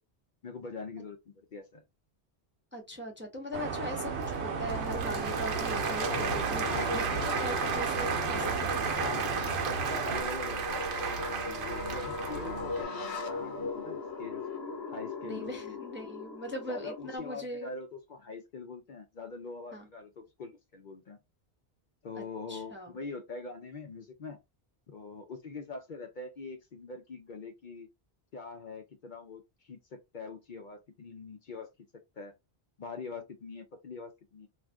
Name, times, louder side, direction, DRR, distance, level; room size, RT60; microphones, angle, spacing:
voice 1, 0.4-1.8 6.6-7.5 9.0-10.8 11.4-14.4 14.9-15.8 16.7-21.2 22.0-24.4 24.9-27.9 28.3-31.7 32.2-32.3 32.8-34.5, left 3 dB, 55° left, 0.7 m, -43 dB
voice 2, 2.7-9.1 15.2-17.7 19.7-19.9 22.2-22.3 22.5-22.9, equal, 15° right, 0.6 m, -40 dB
sound 1, 3.5-10.2, right 4 dB, 85° right, 1.0 m, -34 dB
sound 2, 4.1-17.2, left 3 dB, 75° left, 1.0 m, -39 dB
Applause / Crowd, 4.1-12.8, right 6 dB, 60° right, 0.8 m, -34 dB
2.5 x 2.4 x 3.3 m
omnidirectional pair, 1.1 m